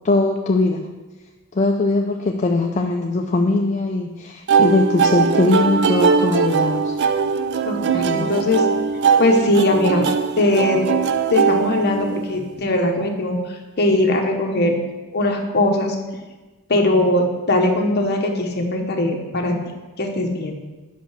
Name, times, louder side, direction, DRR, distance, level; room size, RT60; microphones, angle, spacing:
voice 1, 0.0-0.9 1.5-6.9 7.9-8.3, left 2 dB, 30° left, 2 dB, 0.4 m, -20 dB
sound 1, 4.5-12.4, right 5 dB, 50° right, 0.3 m, -20 dB
voice 2, 7.7-8.6 9.2-10.0 10.4-10.8 11.3-13.4 13.8-14.7 15.1-16.0 16.7-19.6 20.0-20.5, left 1 dB, 50° left, 2 dB, 1.0 m, -20 dB
5.5 x 5.1 x 6.6 m, 1.2 s
head